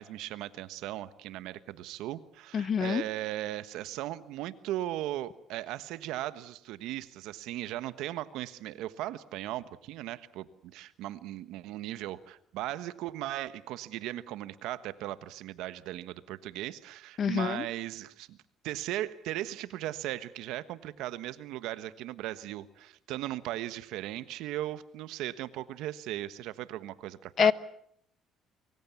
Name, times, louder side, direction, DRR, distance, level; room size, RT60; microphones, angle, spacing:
voice 1, 0.0-18.4 18.6-27.5, right 14 dB, 85° right, 14 dB, 1.3 m, -37 dB
voice 2, 2.5-3.0 17.2-17.7 27.4-27.5, left 7 dB, 45° left, 17 dB, 1.0 m, -26 dB
24.5 x 24.0 x 7.1 m, 0.67 s
cardioid pair, 110°, 0 cm